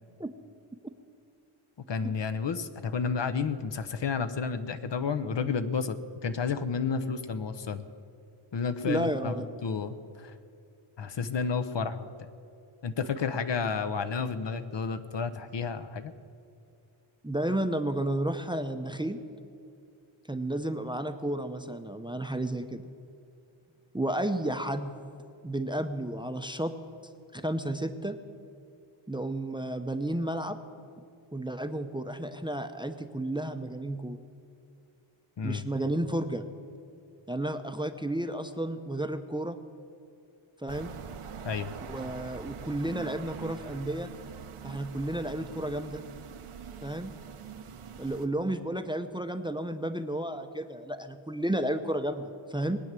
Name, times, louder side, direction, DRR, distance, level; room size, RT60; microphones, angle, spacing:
voice 1, 1.9-6.0 6.2-7.8 8.5-9.3 9.6-10.3 11.0-12.1 12.8-16.1 35.4-35.6 41.4-41.7, left 5 dB, 60° left, 10 dB, 0.9 m, -31 dB
voice 2, 8.8-9.5 17.2-19.2 20.3-22.8 23.9-24.9 25.4-26.7 27.3-28.2 29.1-30.6 31.3-34.2 35.4-36.5 37.3-39.6 40.6-40.9 41.9-44.1 44.6-46.0 46.8-47.1 48.0-52.8, right 1 dB, 10° right, 9 dB, 0.6 m, -32 dB
sound 1, 40.7-48.3, right 7 dB, 85° right, 1.0 m, -44 dB
20.5 x 9.4 x 7.5 m, 2.5 s
wide cardioid pair, 115°, 49 cm